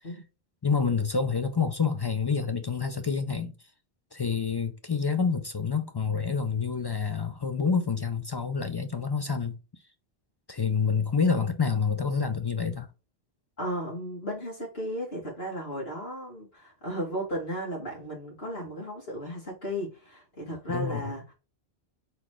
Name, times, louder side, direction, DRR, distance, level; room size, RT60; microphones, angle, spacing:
voice 1, 0.6-3.5 4.1-9.6 10.5-12.9 20.7-21.0, left 5 dB, 45° left, 0.3 m, -27 dB
voice 2, 13.6-21.3, equal, 75° left, 2.4 m, -35 dB
4.1 x 4.1 x 3.1 m
omnidirectional pair, 1.1 m